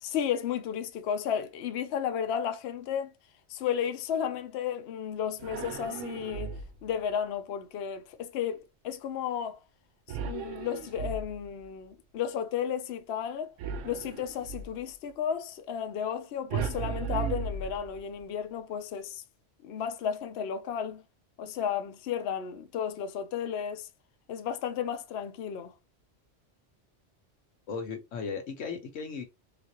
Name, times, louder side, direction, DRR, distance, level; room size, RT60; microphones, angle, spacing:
voice 1, 0.0-3.1 3.5-6.5 6.8-9.6 10.2-13.5 13.8-19.2 19.6-21.0 21.4-23.9 24.3-25.7, left 8 dB, 65° left, 0.8 m, -33 dB
sound 1, 5.4-6.9 10.1-11.6 13.6-14.8 16.5-18.2, right 6 dB, 85° right, 1.0 m, -36 dB
voice 2, 27.7-29.2, left 5 dB, 90° left, 1.3 m, -36 dB
3.9 x 2.5 x 2.9 m
omnidirectional pair, 1.2 m